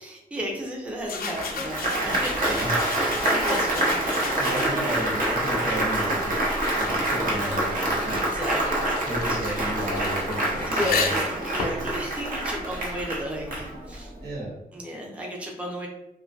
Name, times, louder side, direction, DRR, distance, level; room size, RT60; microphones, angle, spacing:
voice 1, 0.0-2.4 2.8-4.3 4.6-4.9 8.1-8.9 9.3-9.4 9.8-10.0 10.7-14.1 14.7-15.9, equal, 10° right, -1 dB, 0.5 m, -33 dB
sound 1, 1.0-5.0 5.8-13.2, left 4 dB, 70° left, 0.4 m, -35 dB
Applause, 1.3-14.1, right 1 dB, 60° right, 0.6 m, -26 dB
voice 2, 2.4-2.8 4.4-8.2 9.1-11.1 14.2-14.5, right 1 dB, 80° right, -6 dB, 1.1 m, -33 dB
2.2 x 2.1 x 2.5 m, 0.89 s
cardioid pair, 85°, 16 cm